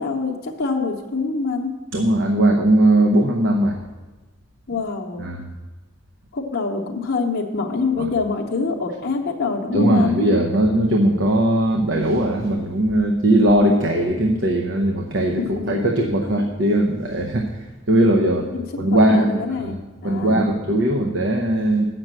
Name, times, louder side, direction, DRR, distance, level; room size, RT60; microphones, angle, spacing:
voice 1, 0.0-1.7 4.7-5.3 6.3-10.2 15.4-16.0 18.3-19.8 20.0-20.5, left 4 dB, 45° left, -1 dB, 0.8 m, -25 dB
voice 2, 1.9-3.8 5.2-5.4 8.0-8.1 9.7-18.5 18.8-19.7 20.0-21.8, right 1 dB, 55° right, 2 dB, 0.7 m, -19 dB
7.9 x 6.1 x 7.4 m, 1.2 s
head